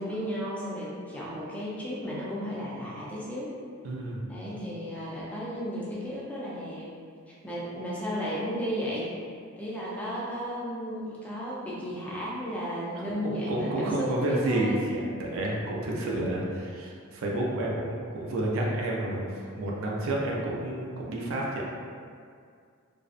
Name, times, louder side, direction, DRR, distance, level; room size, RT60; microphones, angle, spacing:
voice 1, 0.0-3.5 4.3-6.9 7.4-9.1 9.6-14.9, equal, 5° left, -7 dB, 0.4 m, -34 dB
voice 2, 3.8-4.2 13.1-19.3 19.6-21.6, right 1 dB, 65° right, -3 dB, 0.4 m, -30 dB
2.5 x 2.0 x 2.4 m, 2.2 s
head